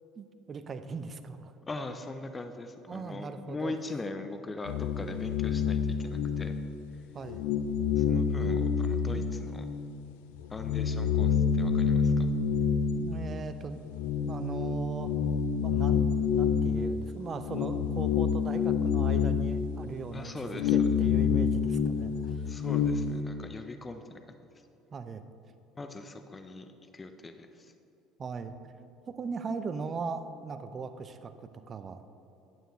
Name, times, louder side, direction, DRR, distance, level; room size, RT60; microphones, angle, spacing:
voice 1, 0.2-1.5 2.9-3.7 7.1-7.5 13.0-13.8 14.3-15.1 15.6-22.4 24.9-25.2 28.2-28.5 29.1-32.0, right 4 dB, 35° right, 9 dB, 0.6 m, -39 dB
voice 2, 1.7-6.6 8.0-9.7 10.5-12.3 20.1-21.0 22.5-24.2 25.8-27.7, left 2 dB, 25° left, 8 dB, 0.6 m, -41 dB
sound 1, 4.6-6.9 7.2-10.0 10.3-23.2, left 6 dB, 75° left, 0.4 m, -28 dB
9.0 x 8.8 x 3.1 m, 2.8 s
hypercardioid pair, 65°, 0 cm